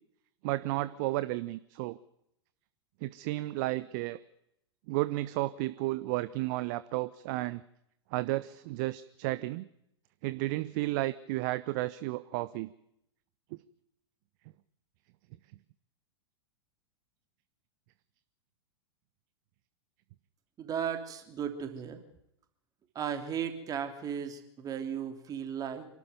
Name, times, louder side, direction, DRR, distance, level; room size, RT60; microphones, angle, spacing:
voice 1, 0.4-2.0 3.0-4.2 4.9-7.6 8.1-9.7 10.2-12.7 13.5-13.6, right 18 dB, 40° right, 16 dB, 0.8 m, -32 dB
voice 2, 20.6-22.0 22.9-25.9, right 8 dB, 25° right, 6 dB, 3.1 m, -35 dB
27.0 x 12.5 x 9.3 m, 0.77 s
figure-of-eight pair, 95°, 15 cm